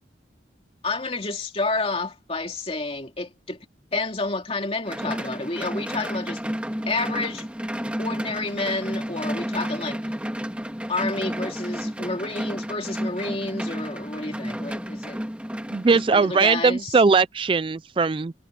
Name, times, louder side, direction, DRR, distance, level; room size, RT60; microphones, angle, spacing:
voice 1, 0.8-3.6 3.9-6.4 6.9-7.5 8.0-10.0 10.9-15.2 15.9-17.0, left 3 dB, 30° left, 2.6 m, -30 dB
sound 1, 4.9-16.5, equal, 5° right, 1.7 m, -31 dB
voice 2, 15.7-18.3, right 4 dB, 25° right, 0.3 m, -20 dB
head